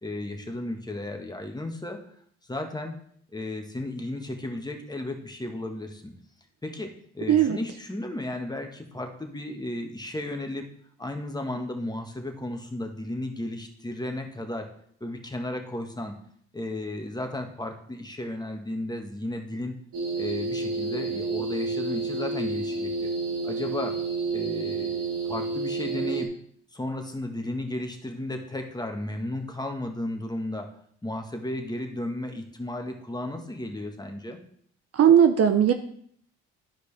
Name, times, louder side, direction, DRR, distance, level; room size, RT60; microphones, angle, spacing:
voice 1, 0.0-2.0 2.5-3.0 3.3-6.1 6.6-10.6 11.0-14.7 15.0-16.1 16.5-19.7 20.2-23.1 23.4-24.0 24.3-26.3 26.7-30.7 31.0-34.4, left 1 dB, 10° left, 4 dB, 1.6 m, -34 dB
voice 2, 7.3-7.6 34.9-35.7, right 9 dB, 50° right, 8 dB, 0.7 m, -18 dB
sound 1, 19.9-26.2, right 3 dB, 65° right, 1.9 m, -30 dB
12.0 x 5.0 x 3.4 m, 0.64 s
hypercardioid pair, 55°, 32 cm